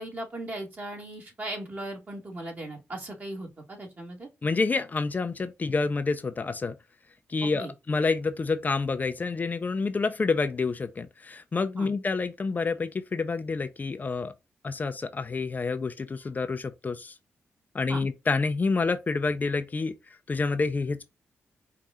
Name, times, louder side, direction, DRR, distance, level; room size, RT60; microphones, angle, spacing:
voice 1, 0.0-4.3 7.6-7.7 11.8-11.9 17.9-18.0, right 1 dB, 40° right, 2.2 m, -38 dB
voice 2, 4.4-6.8 7.3-14.3 14.6-17.1 17.7-21.0, left 4 dB, 35° left, 0.6 m, -28 dB
4.8 x 2.5 x 4.2 m
cardioid pair, 80°, 5 cm